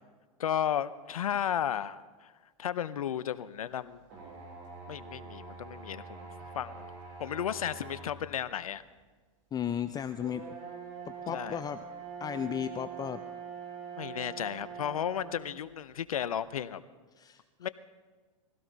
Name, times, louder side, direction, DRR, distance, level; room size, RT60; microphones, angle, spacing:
voice 1, 0.4-2.3 2.6-4.0 4.9-6.3 6.5-6.9 7.2-8.8 11.3-11.6 14.0-16.8 17.6-17.7, left 9 dB, 85° left, 15 dB, 0.8 m, -34 dB
sound 1, 4.1-8.2 8.9-9.0 10.2-15.5, right 6 dB, 45° right, 6.7 m, -44 dB
voice 2, 9.5-10.5 11.1-11.8 12.2-13.2 17.2-17.4, left 9 dB, 20° left, 10 dB, 0.6 m, -34 dB
21.5 x 16.5 x 4.1 m, 1.4 s
hypercardioid pair, 105°, 18 cm